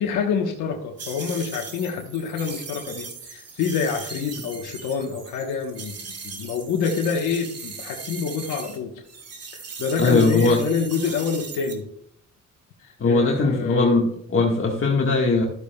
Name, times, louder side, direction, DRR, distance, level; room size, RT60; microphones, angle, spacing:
voice 1, 0.0-8.9 9.5-11.8 12.8-14.1, left 6 dB, 85° left, 1 dB, 1.2 m, -27 dB
sound 1, 1.0-8.8 9.1-11.7, right 5 dB, 55° right, 2.3 m, -38 dB
voice 2, 10.0-10.6 13.0-15.4, left 3 dB, 45° left, -1 dB, 1.6 m, -20 dB
12.5 x 8.4 x 2.3 m, 0.68 s
cardioid pair, 90°, 30 cm